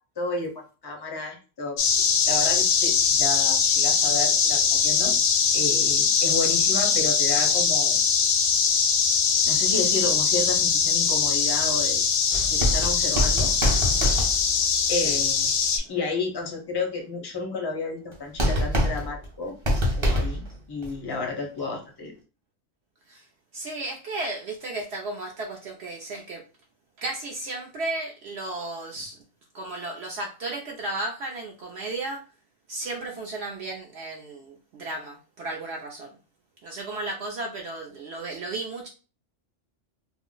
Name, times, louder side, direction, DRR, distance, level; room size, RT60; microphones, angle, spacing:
voice 1, 0.2-1.8 2.2-5.1 5.5-8.0 9.4-12.0 12.5-13.5 14.9-19.6 20.0-22.1, left 3 dB, 30° left, 2 dB, 0.5 m, -31 dB
sound 1, 1.8-15.8, left 6 dB, 70° left, 0.9 m, -22 dB
sound 2, 12.3-14.9 18.1-18.2 18.4-20.6 20.8-20.9, equal, 30° right, 0.6 m, -25 dB
voice 2, 23.5-26.4 27.0-29.1 29.5-32.2 32.7-36.1 36.6-38.9, right 2 dB, 65° right, 0 dB, 0.8 m, -34 dB
2.5 x 2.0 x 3.7 m, 0.34 s
omnidirectional pair, 1.3 m